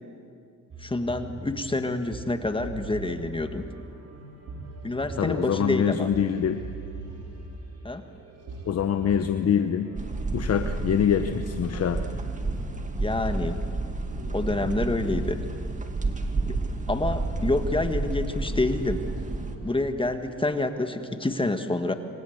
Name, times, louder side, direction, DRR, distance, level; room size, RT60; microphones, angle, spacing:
sound 1, 0.7-20.4, right 2 dB, 55° right, 5.1 m, -41 dB
voice 1, 0.8-3.7 4.8-6.1 7.8-8.1 13.0-13.6 14.3-15.4 16.4-16.5 16.9-19.1 19.6-21.9, left 2 dB, 15° left, 7 dB, 1.7 m, -27 dB
voice 2, 5.2-6.6 8.7-9.9 10.3-12.0, left 8 dB, 55° left, 8 dB, 1.2 m, -24 dB
sound 2, 10.0-19.6, right 3 dB, 25° right, 2.4 m, -30 dB
26.5 x 26.5 x 8.1 m, 2.5 s
cardioid pair, 90°, 30 cm